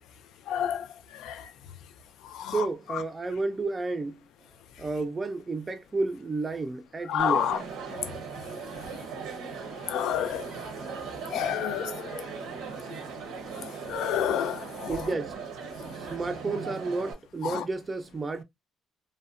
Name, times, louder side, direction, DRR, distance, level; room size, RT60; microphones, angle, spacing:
voice 1, 0.5-0.9 1.1-1.5 2.2-3.0 7.1-7.6 7.9-8.1 9.8-10.5 11.3-12.2 13.5-15.1 17.4-17.7, left 10 dB, 80° left, 0.3 m, -30 dB
voice 2, 2.5-4.2 4.8-7.5 14.9-15.3 15.7-18.4, right 3 dB, 25° right, 0.3 m, -31 dB
Crowd, 7.2-17.1, right 5 dB, 90° right, 0.7 m, -38 dB
2.7 x 2.1 x 2.4 m
cardioid pair, 100°, 0 cm